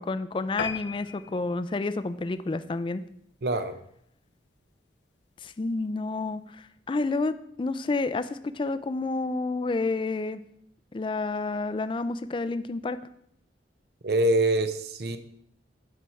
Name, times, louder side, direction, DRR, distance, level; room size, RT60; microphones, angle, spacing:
voice 1, 0.0-3.0 5.4-10.4 10.9-13.0, left 3 dB, 30° left, 13 dB, 0.4 m, -30 dB
sound 1, 0.6-3.3 3.8-4.0 4.4-4.5 4.8-4.9 5.2-5.3, left 5 dB, 80° left, 0.6 m, -39 dB
voice 2, 3.4-3.7 14.0-15.2, right 1 dB, 60° right, 10 dB, 0.7 m, -24 dB
11.0 x 4.4 x 4.7 m, 0.71 s
head